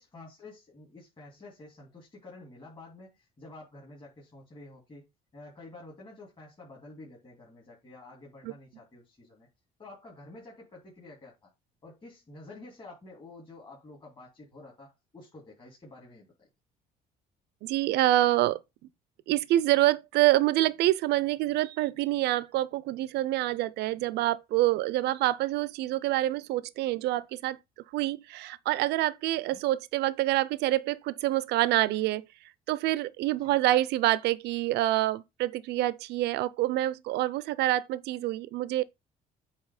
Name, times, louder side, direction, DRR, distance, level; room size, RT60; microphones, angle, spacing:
voice 1, 0.0-9.5 9.8-11.5 11.8-16.5 29.5-29.6 33.4-33.6, left 2 dB, 30° left, 2.9 m, -49 dB
voice 2, 17.6-18.6 19.3-27.6 27.9-32.2 32.7-38.8, right 15 dB, 80° right, 0.5 m, -26 dB
8.3 x 3.0 x 4.9 m
cardioid pair, 110°, 17 cm